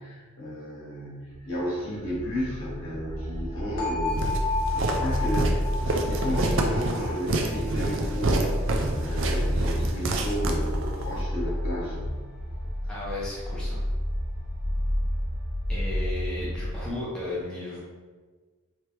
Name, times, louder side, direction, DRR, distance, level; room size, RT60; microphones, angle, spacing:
voice 1, 0.0-4.3 4.7-8.4 8.9-12.2, equal, 65° left, -6 dB, 1.4 m, -33 dB
sound 1, 1.3-16.9, equal, 80° right, 1.4 m, -30 dB
sound 2, 3.8-9.6, left 4 dB, 45° left, 0.7 m, -34 dB
Walk footsteps, 4.2-11.1, right 2 dB, 60° right, 0.4 m, -28 dB
voice 2, 12.9-13.8 15.7-17.8, left 2 dB, 5° left, -8 dB, 0.6 m, -34 dB
3.3 x 3.2 x 3.0 m, 1.4 s
head